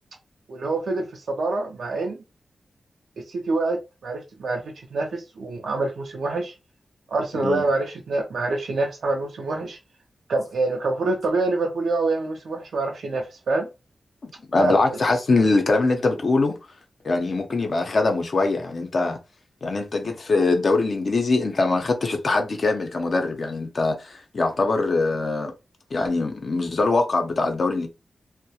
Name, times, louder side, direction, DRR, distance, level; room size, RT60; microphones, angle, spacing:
voice 1, 0.5-2.2 3.3-3.8 4.0-4.6 4.9-6.5 7.1-9.8 10.3-13.7 14.6-14.8, right 3 dB, 85° right, 0.4 m, -26 dB
voice 2, 14.2-16.6 17.0-19.2 19.6-25.5 25.9-27.9, left 3 dB, 50° left, 0.5 m, -22 dB
2.3 x 2.0 x 2.7 m
wide cardioid pair, 130°, 0 cm